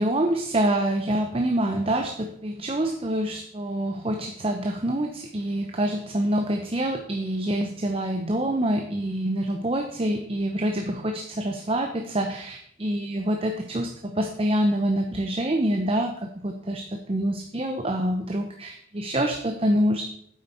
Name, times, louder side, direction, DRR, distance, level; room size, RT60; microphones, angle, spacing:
voice 1, 0.0-20.0, right 1 dB, 30° right, 4 dB, 0.7 m, -26 dB
9.6 x 7.8 x 4.4 m, 0.65 s
head